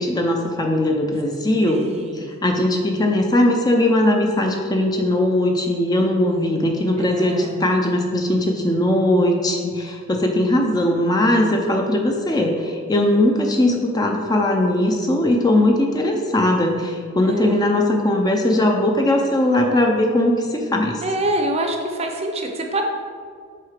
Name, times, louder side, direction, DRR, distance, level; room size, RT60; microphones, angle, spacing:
voice 1, 0.0-1.9 2.1-21.0, left 1 dB, 20° left, 2 dB, 0.5 m, -19 dB
voice 2, 1.7-2.3 6.9-7.5 17.2-17.7 21.0-22.8, right 1 dB, 30° right, 3 dB, 0.6 m, -26 dB
7.6 x 3.7 x 5.0 m, 2.1 s
head